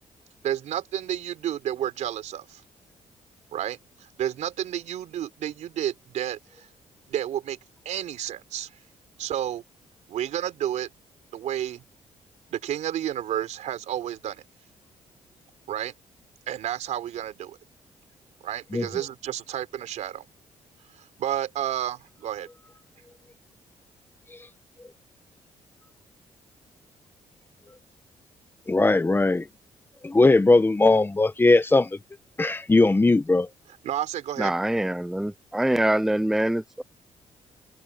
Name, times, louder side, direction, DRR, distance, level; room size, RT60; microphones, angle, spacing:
voice 1, 0.4-2.6 3.5-3.8 4.2-6.7 7.1-7.6 7.9-8.7 9.2-9.6 10.1-10.9 11.3-11.8 12.5-14.4 15.7-15.9 16.5-17.6 18.4-20.2 21.0-22.5 33.8-34.5, right 11 dB, 80° right, 4.1 m, -31 dB
voice 2, 28.7-29.5 30.0-31.9 32.4-33.5, left 2 dB, 20° left, 1.4 m, -19 dB
voice 3, 34.4-36.8, right 1 dB, 5° right, 0.7 m, -24 dB
cardioid pair, 105°, 12 cm